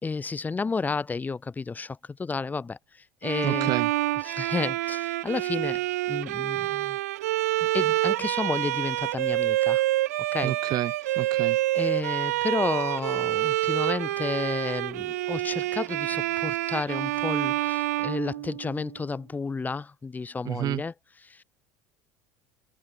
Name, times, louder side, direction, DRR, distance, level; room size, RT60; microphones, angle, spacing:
voice 1, 0.0-2.8 3.2-3.7 4.2-5.8 6.1-7.0 7.6-9.8 10.3-10.6 11.7-20.9 21.2-21.4, left 4 dB, 20° left, 2.7 m, -31 dB
Bowed string instrument, 3.2-19.0, right 16 dB, 85° right, 2.2 m, -27 dB
voice 2, 3.4-3.9 10.4-11.6 20.4-20.8, right 13 dB, 50° right, 1.5 m, -30 dB
hypercardioid pair, 85°, 8 cm